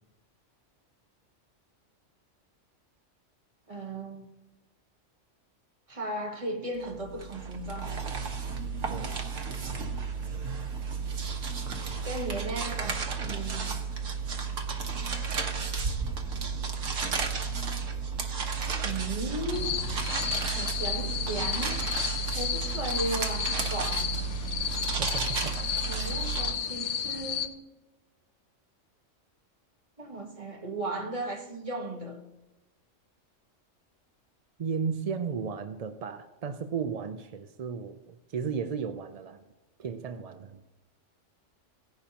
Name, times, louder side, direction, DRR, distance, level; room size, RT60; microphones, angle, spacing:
voice 1, 3.7-4.3 5.9-8.0 12.0-13.8 18.8-20.1 20.5-21.8 22.2-24.1 25.9-27.6 30.0-32.2, right 2 dB, 25° right, 1.4 m, -36 dB
sound 1, 6.8-26.5, right 5 dB, 75° right, 1.4 m, -33 dB
sound 2, 19.5-27.5, left 8 dB, 65° left, 1.0 m, -33 dB
voice 2, 25.0-25.5 34.6-39.4 39.8-40.6, right 6 dB, 55° right, 0.4 m, -34 dB
17.0 x 10.5 x 2.9 m
omnidirectional pair, 1.3 m